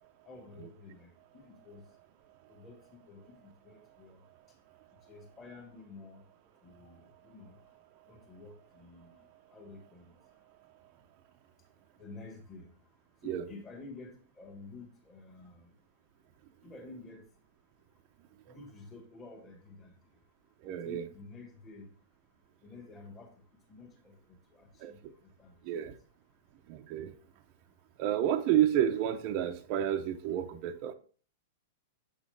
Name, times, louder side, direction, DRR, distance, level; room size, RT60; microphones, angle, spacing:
voice 1, 0.2-1.9 2.5-4.2 4.5-4.6 5.0-6.3 6.6-7.7 8.0-10.2 12.0-12.7 13.2-15.7 16.6-17.3 18.5-20.2 20.6-21.9 22.6-23.4 23.7-25.9, left 3 dB, 20° left, 1.4 m, -51 dB
voice 2, 20.6-21.1 24.8-24.9 25.6-25.9 26.7-27.1 28.0-30.9, right 11 dB, 35° right, 0.6 m, -30 dB
7.2 x 6.3 x 3.2 m
supercardioid pair, 165°, 0 cm